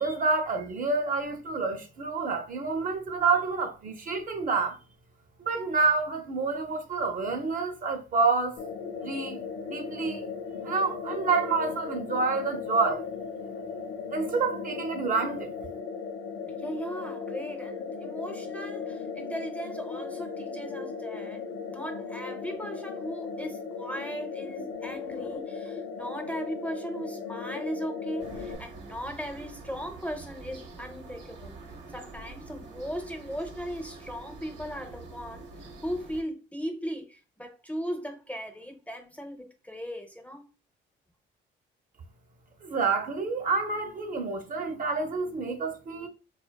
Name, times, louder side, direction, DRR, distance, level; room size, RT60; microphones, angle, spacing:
voice 1, 0.0-4.8 5.4-8.6 9.0-9.4 9.7-10.2 10.6-13.0 14.1-15.5 42.6-46.1, right 4 dB, 45° right, 0.5 m, -28 dB
sound 1, 8.6-28.5, left 5 dB, 65° left, 0.5 m, -37 dB
voice 2, 16.5-31.6 31.9-40.5, equal, 5° left, 0.5 m, -38 dB
sound 2, 28.2-36.2, right 3 dB, 65° right, 0.9 m, -46 dB
2.6 x 2.2 x 2.2 m
cardioid pair, 90°, 20 cm